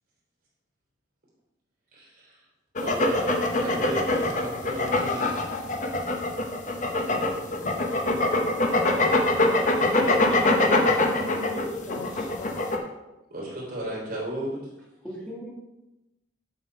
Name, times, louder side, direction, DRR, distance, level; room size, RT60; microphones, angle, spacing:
voice 1, 1.9-2.4 2.8-5.4 13.3-14.7, right 1 dB, 50° right, -4 dB, 3.3 m, -34 dB
sound 1, 2.8-12.8, left 2 dB, 40° left, 0.9 m, -24 dB
voice 2, 8.7-11.5 11.9-12.6, equal, 85° left, -5 dB, 3.1 m, -40 dB
voice 3, 9.9-12.2 15.0-15.5, equal, 5° left, -4 dB, 1.9 m, -37 dB
7.4 x 7.3 x 4.6 m, 0.97 s
head